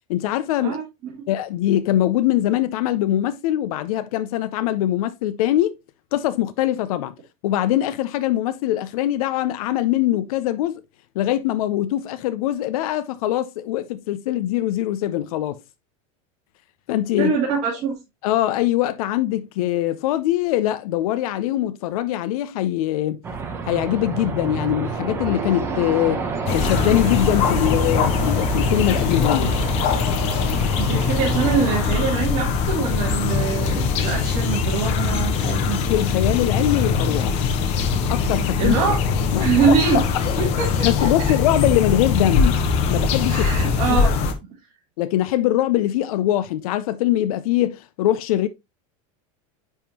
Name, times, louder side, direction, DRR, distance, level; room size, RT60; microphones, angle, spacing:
voice 1, 0.1-0.8 1.3-5.7 6.1-7.1 7.4-10.8 11.2-15.6 16.9-17.4 18.2-23.2 23.6-26.2 26.5-29.5 35.4-35.6 35.9-37.6 38.1-38.8 39.3-40.0 40.8-42.6 42.9-43.5 43.9-44.0 45.0-48.5, left 13 dB, 90° left, 0.5 m, -22 dB
voice 2, 0.6-1.1 17.2-17.9 30.8-35.8 38.6-38.9 39.3-40.0 40.4-41.1 43.3-44.1, right 6 dB, 40° right, 3.1 m, -23 dB
sound 1, 23.2-31.9, right 4 dB, 15° right, 0.8 m, -30 dB
sound 2, 26.5-44.3, left 5 dB, 35° left, 0.8 m, -21 dB
9.8 x 3.6 x 2.8 m
supercardioid pair, 180°, 18 cm